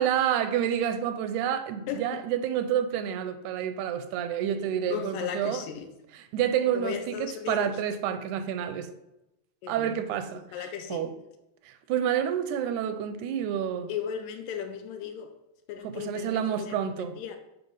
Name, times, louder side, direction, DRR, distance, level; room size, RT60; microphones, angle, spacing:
voice 1, 0.0-5.6 6.3-8.9 9.7-11.1 11.7-13.9 15.8-17.2, right 9 dB, 85° right, 2.0 m, -29 dB
voice 2, 1.9-2.2 4.9-5.9 6.7-7.8 9.6-10.0 10.5-11.1 13.9-15.3 15.7-17.4, left 8 dB, 80° left, 2.0 m, -36 dB
8.9 x 3.0 x 5.5 m
omnidirectional pair, 3.4 m